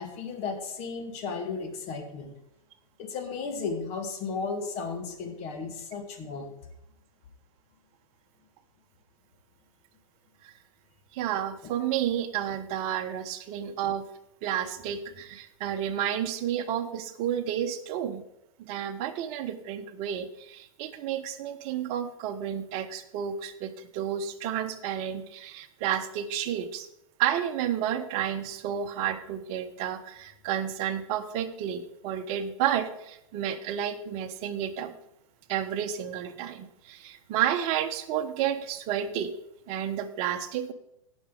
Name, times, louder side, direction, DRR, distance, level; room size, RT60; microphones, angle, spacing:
voice 1, 0.0-2.4 3.0-6.6, left 4 dB, 35° left, 5 dB, 2.0 m, -34 dB
voice 2, 11.1-14.1 14.4-18.2 18.6-26.9 27.2-34.9 35.5-39.3 39.7-40.7, right 10 dB, 35° right, 8 dB, 1.1 m, -31 dB
17.5 x 6.2 x 4.0 m, 0.81 s
figure-of-eight pair, 110°, 18 cm